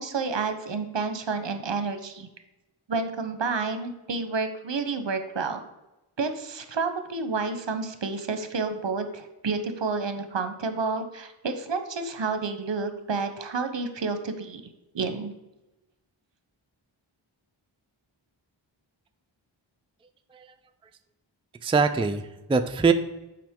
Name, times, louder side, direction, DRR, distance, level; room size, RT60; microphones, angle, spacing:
voice 1, 0.0-2.3 2.9-5.6 6.2-14.6 14.9-15.3, right 4 dB, 65° right, 8 dB, 0.8 m, -30 dB
voice 2, 21.6-22.9, right 5 dB, 10° right, 8 dB, 0.4 m, -23 dB
7.5 x 5.0 x 3.6 m, 1.0 s
wide cardioid pair, 40°, 47 cm